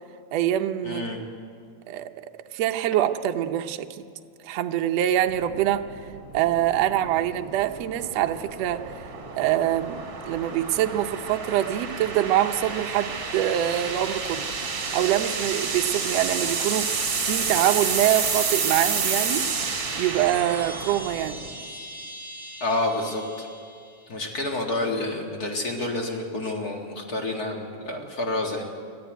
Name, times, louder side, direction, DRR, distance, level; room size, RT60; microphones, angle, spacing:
voice 1, 0.3-1.1 1.9-2.1 2.5-4.0 4.4-5.8 6.3-9.1 9.4-14.5 14.8-16.9 17.2-19.5 20.0-21.4, right 12 dB, 70° right, 6 dB, 1.7 m, -25 dB
voice 2, 0.8-1.3 22.6-23.5 24.1-28.6, left 2 dB, 35° left, 2 dB, 2.0 m, -29 dB
sound 1, 5.3-21.5, right 5 dB, 40° right, 2.5 m, -30 dB
Chime, 19.7-24.3, right 1 dB, 20° right, 1.1 m, -41 dB
21.0 x 14.0 x 9.2 m, 2.2 s
omnidirectional pair, 3.4 m